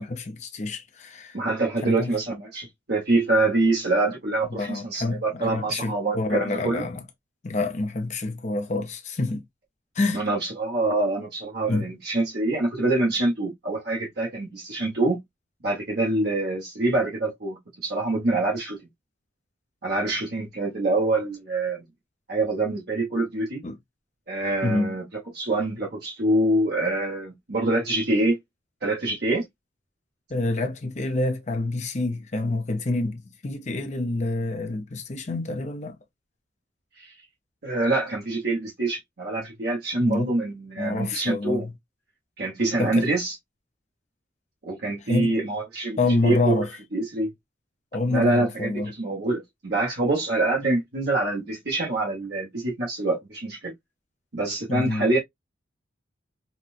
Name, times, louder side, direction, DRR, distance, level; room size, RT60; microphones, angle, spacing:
voice 1, 0.0-1.4 1.8-2.1 4.5-7.0 7.4-9.4 9.9-10.2 11.7-11.9 23.6-23.8 24.6-25.0 30.3-36.0 40.0-40.3 40.8-41.7 42.8-43.1 45.1-45.3 46.0-46.7 47.9-48.9 54.7-55.1, left 2 dB, 35° left, 0.7 m, -27 dB
voice 2, 1.3-6.9 10.1-15.2 15.6-18.8 19.8-21.9 22.3-23.6 24.3-25.0 25.3-28.4 28.8-29.4 37.0-37.1 37.6-41.7 42.4-43.3 44.6-46.6 46.9-47.3 48.1-48.7 49.0-53.7 54.3-55.2, right 2 dB, 55° right, 1.2 m, -25 dB
4.2 x 2.3 x 2.4 m
head